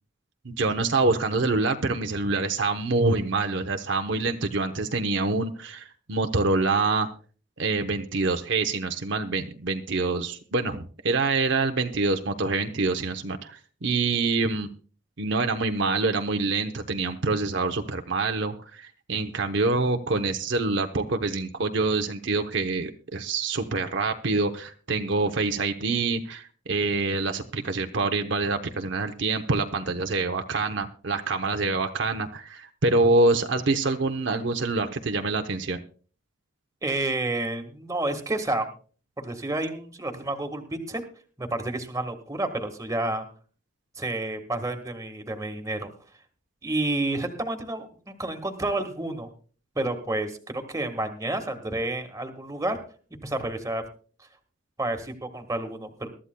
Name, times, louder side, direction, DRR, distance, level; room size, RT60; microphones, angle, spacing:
voice 1, 0.4-7.1 7.6-14.7 15.2-35.8, right 3 dB, 65° right, 5 dB, 0.8 m, -26 dB
voice 2, 36.8-38.7 39.2-41.0 41.4-43.2 44.0-45.9 46.6-49.3 49.7-52.8 53.2-53.8 54.8-56.1, right 2 dB, 15° right, 5 dB, 1.5 m, -30 dB
22.5 x 13.0 x 2.2 m, 0.40 s
head